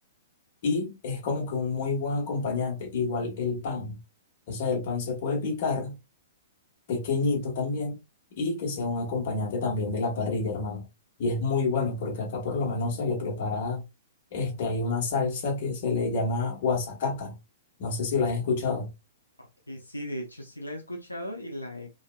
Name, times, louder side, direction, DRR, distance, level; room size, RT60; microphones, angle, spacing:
voice 1, 0.6-4.0 4.5-6.0 6.9-8.0 8.4-10.9 11.2-13.8 14.3-17.4 17.8-18.9, left 4 dB, 45° left, 1.2 m, -28 dB
voice 2, 19.4-21.9, equal, 85° left, 0.6 m, -37 dB
3.1 x 2.7 x 2.3 m
figure-of-eight pair, 110°, 0 cm